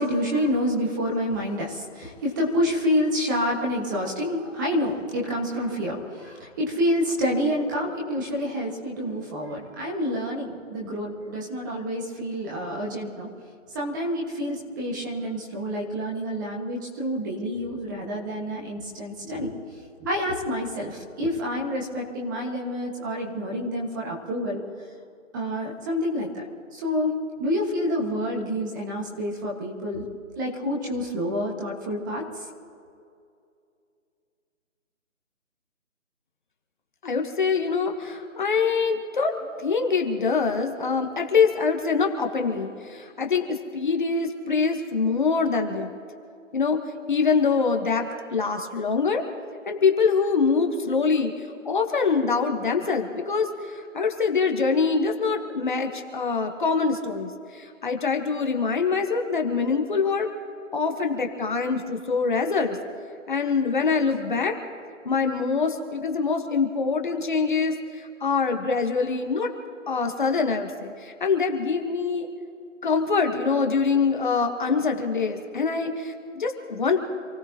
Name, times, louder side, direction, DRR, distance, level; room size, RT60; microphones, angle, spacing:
voice 1, 0.0-13.3 13.7-19.5 20.0-24.6 25.3-26.4 26.7-27.1 27.4-30.0 30.3-32.4, equal, 15° right, -2 dB, 1.7 m, -28 dB
voice 2, 37.0-45.9 46.5-46.8 47.1-49.2 49.7-51.3 51.6-60.3 60.7-62.8 63.3-64.6 65.0-69.5 69.9-72.3 72.8-77.0, left 5 dB, 40° left, 4 dB, 1.4 m, -24 dB
28.0 x 16.5 x 3.0 m, 2.4 s
figure-of-eight pair, 165°, 39 cm